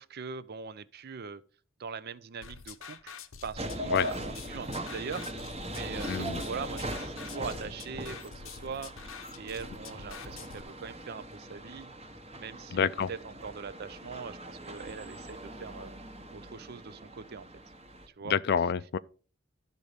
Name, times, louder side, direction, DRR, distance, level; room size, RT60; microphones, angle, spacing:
voice 1, 0.0-1.4 1.8-3.2 3.4-5.3 5.7-8.9 9.4-11.9 12.4-15.9 16.3-17.5 18.2-18.4, right 5 dB, 50° right, 0.5 m, -41 dB
sound 1, 2.4-10.6, left 6 dB, 90° left, 0.8 m, -47 dB
sound 2, 3.6-18.1, right 1 dB, 30° right, 1.0 m, -40 dB
voice 2, 6.1-6.4 12.7-13.1 18.2-19.0, left 7 dB, 55° left, 0.4 m, -27 dB
12.5 x 4.1 x 5.0 m
head